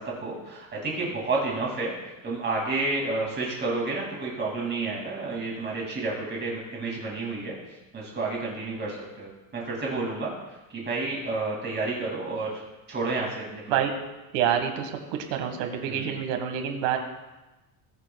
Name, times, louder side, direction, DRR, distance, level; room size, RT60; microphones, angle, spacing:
voice 1, 0.0-7.6 7.9-10.3 10.7-12.6 12.9-13.8 15.9-16.1, right 3 dB, 25° right, -3 dB, 2.5 m, -30 dB
voice 2, 14.3-14.9 15.3-17.0, right 9 dB, 90° right, 4 dB, 1.8 m, -27 dB
19.5 x 7.3 x 2.3 m, 1.1 s
cardioid pair, 155°, 42 cm